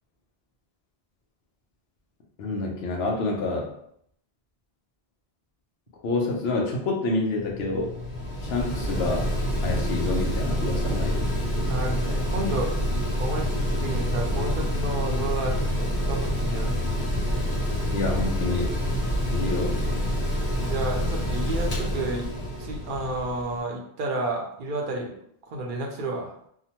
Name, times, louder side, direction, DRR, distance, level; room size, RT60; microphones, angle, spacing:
voice 1, 2.4-3.7 6.0-7.9 8.4-9.3 9.6-11.3 17.9-18.7 19.3-20.0, left 2 dB, 75° left, -1 dB, 0.8 m, -28 dB
Mechanical fan, 7.3-23.6, equal, 45° left, 1.0 m, -27 dB
voice 2, 11.7-12.7 13.2-16.9 20.6-22.3 22.6-25.1 25.5-26.3, right 2 dB, 60° right, 1 dB, 0.7 m, -31 dB
2.8 x 2.1 x 2.8 m, 0.68 s
omnidirectional pair, 1.1 m